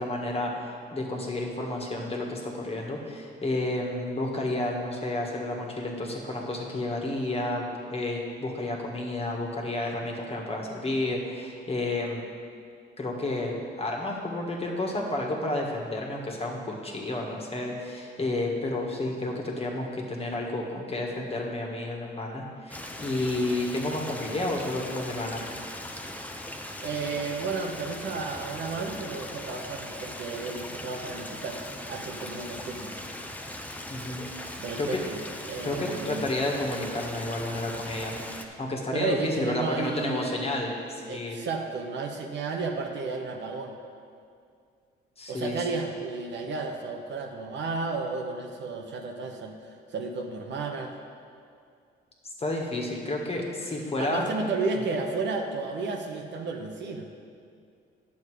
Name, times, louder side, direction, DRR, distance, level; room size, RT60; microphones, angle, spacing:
voice 1, 0.0-12.2 13.0-25.4 33.9-34.2 34.8-35.0 35.6-38.2 38.6-41.4 45.2-45.7 52.4-54.3, left 2 dB, 30° left, 0 dB, 1.7 m, -31 dB
Stream, 22.7-38.4, left 1 dB, 5° left, 0.8 m, -39 dB
voice 2, 26.8-31.6 31.9-32.9 34.6-35.2 35.5-36.3 38.9-40.5 41.1-43.8 45.3-50.9 54.0-57.1, right 4 dB, 65° right, 3 dB, 1.1 m, -33 dB
9.5 x 7.2 x 4.9 m, 2.3 s
cardioid pair, 90°, 20 cm